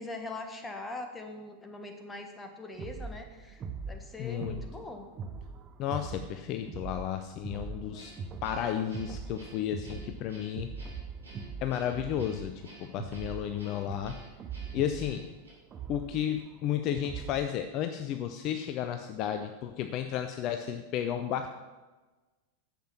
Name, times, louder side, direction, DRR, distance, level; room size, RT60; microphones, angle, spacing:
voice 1, 0.0-5.1, left 2 dB, 10° left, 5 dB, 1.5 m, -42 dB
sound 1, 2.8-17.6, right 5 dB, 25° right, 0.9 m, -42 dB
voice 2, 4.2-4.6 5.8-8.1 8.4-10.7 11.6-12.5 12.8-14.2 14.7-15.2 15.9-21.5, left 10 dB, 40° left, 8 dB, 0.6 m, -33 dB
Guitar, 8.0-15.5, right 2 dB, 80° right, 3.9 m, -52 dB
10.0 x 7.6 x 5.9 m, 1.2 s
figure-of-eight pair, 90°, 0 cm